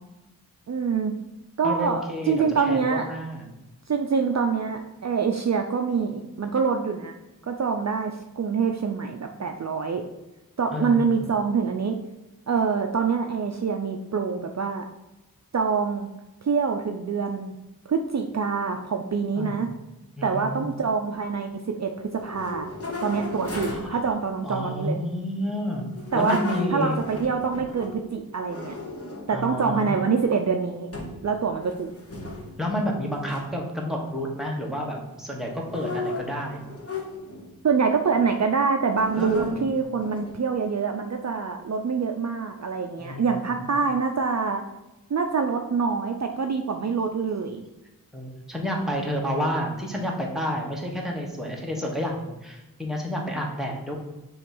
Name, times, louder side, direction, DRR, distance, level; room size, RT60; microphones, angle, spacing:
voice 1, 0.7-1.1 1.6-3.2 3.9-7.1 7.4-10.0 10.6-12.0 12.5-14.8 15.5-16.1 16.4-17.5 17.9-19.7 20.2-21.9 22.2-22.7 23.0-25.0 26.1-26.4 26.7-28.7 29.3-30.9 31.2-31.9 37.6-44.6 45.1-47.6, right 5 dB, 50° right, 4 dB, 0.5 m, -25 dB
voice 2, 1.6-3.5 10.7-11.3 19.4-19.7 20.2-20.7 23.7-24.0 24.4-25.9 26.1-27.0 29.3-29.9 32.6-36.7 39.2-39.7 43.0-43.7 48.1-53.9, equal, ahead, -1 dB, 1.4 m, -30 dB
sound 1, 22.1-24.0 25.9-28.0 28.5-29.4 29.9-30.5 30.9-31.3 31.5-32.7 33.2-33.4 35.6-37.5 38.1-38.5 38.9-40.5, left 2 dB, 40° left, 1.3 m, -35 dB
7.0 x 3.1 x 5.3 m, 1.0 s
wide cardioid pair, 80°, 35 cm